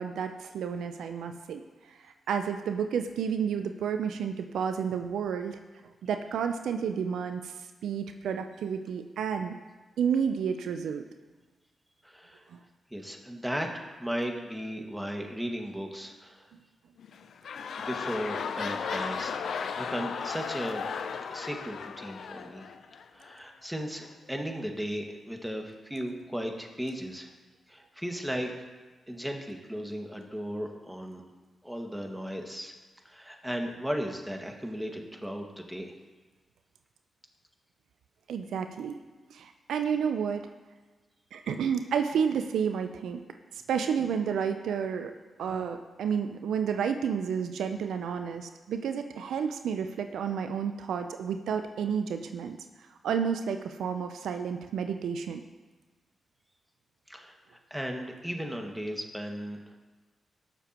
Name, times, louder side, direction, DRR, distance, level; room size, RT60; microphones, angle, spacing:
voice 1, 0.0-1.6 1.9-5.6 6.0-7.5 7.8-9.5 10.0-11.0 12.5-12.6 38.3-39.0 39.3-40.4 41.3-43.2 43.5-45.1 45.4-52.6 53.0-55.4, right 7 dB, 80° right, 7 dB, 0.5 m, -31 dB
voice 2, 12.0-12.5 12.9-16.5 17.8-20.9 21.3-22.7 23.1-27.3 27.7-28.5 29.1-31.2 31.6-32.7 33.0-35.9 57.1-59.8, equal, 5° right, 2 dB, 1.9 m, -36 dB
sound 1, 17.0-23.3 24.0-24.1, left 6 dB, 70° left, 0.6 m, -35 dB
18.5 x 6.8 x 3.0 m, 1.3 s
supercardioid pair, 45°, 0 cm